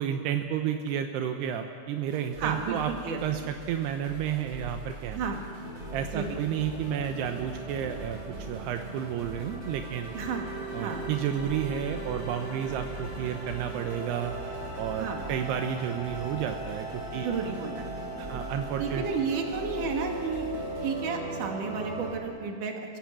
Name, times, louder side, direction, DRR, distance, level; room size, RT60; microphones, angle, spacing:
voice 1, 0.0-2.9 3.2-5.2 5.9-8.2 8.5-10.1 10.7-14.3 14.8-17.3 18.1-19.1, right 9 dB, 80° right, 6 dB, 2.9 m, -31 dB
sound 1, 2.0-21.0, right 1 dB, 35° right, 2.2 m, -44 dB
voice 2, 2.4-3.5 5.1-5.4 6.1-6.4 10.1-10.5 10.8-11.1 15.0-15.3 17.2-18.4 18.8-20.5 20.8-23.0, right 5 dB, 55° right, 2 dB, 3.3 m, -32 dB
sound 2, 5.6-22.2, right 1 dB, 15° right, 4.5 m, -39 dB
29.0 x 16.5 x 7.6 m, 2.4 s
omnidirectional pair, 4.7 m